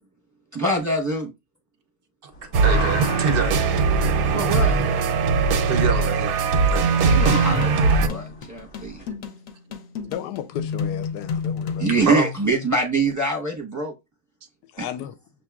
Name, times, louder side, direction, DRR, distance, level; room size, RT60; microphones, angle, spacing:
voice 1, 0.5-1.3 4.3-4.8 7.0-9.0 11.8-13.9 14.8-14.9, right 2 dB, 15° right, 0.6 m, -24 dB
sound 1, 2.3-9.1, left 4 dB, 40° left, 0.9 m, -38 dB
sound 2, 2.5-8.1, right 4 dB, 85° right, 1.2 m, -20 dB
voice 2, 2.6-3.6 4.5-4.7 5.7-6.4 6.7-7.2 12.0-12.3, right 5 dB, 60° right, 0.6 m, -27 dB
sound 3, 7.1-12.1, left 6 dB, 65° left, 1.0 m, -31 dB
voice 3, 10.0-11.9 14.7-15.1, left 11 dB, 85° left, 1.1 m, -34 dB
6.5 x 2.9 x 2.3 m
omnidirectional pair, 1.7 m